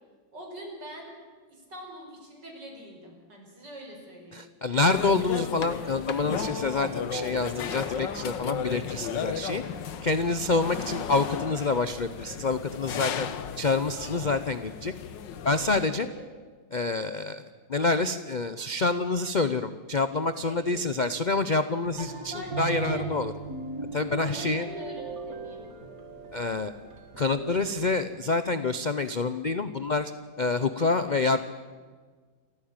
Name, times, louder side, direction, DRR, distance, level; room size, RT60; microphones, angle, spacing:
voice 1, 0.3-1.1 1.5-4.4 10.5-10.8 16.0-16.2 20.4-20.8 22.0-23.1 24.2-25.7, right 1 dB, 70° right, 1 dB, 5.8 m, -43 dB
voice 2, 4.3-9.6 10.0-13.3 13.6-14.9 15.4-16.1 16.7-17.4 17.7-23.3 23.9-24.7 26.3-26.7 27.2-30.1 30.4-31.4, left 3 dB, 55° left, 11 dB, 0.5 m, -27 dB
sound 1, 4.9-15.9, left 7 dB, 80° left, 1.7 m, -35 dB
sound 2, 7.9-10.3, equal, 20° right, 4.9 m, -51 dB
sound 3, 21.8-28.0, right 4 dB, 50° right, 2.4 m, -38 dB
28.0 x 14.5 x 8.9 m, 1.5 s
omnidirectional pair, 2.0 m